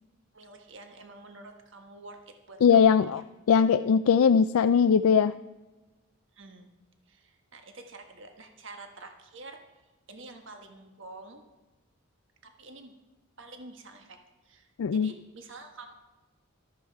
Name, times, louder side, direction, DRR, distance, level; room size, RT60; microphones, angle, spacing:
voice 1, 0.3-3.2 6.3-6.7 7.1-9.8 10.1-11.4 12.4-12.9 13.4-14.2 14.4-15.9, right 2 dB, 65° right, 5 dB, 1.4 m, -48 dB
voice 2, 2.6-3.2 3.5-5.3 14.8-15.1, left 6 dB, 85° left, 11 dB, 0.4 m, -20 dB
14.0 x 13.0 x 4.7 m, 1.1 s
head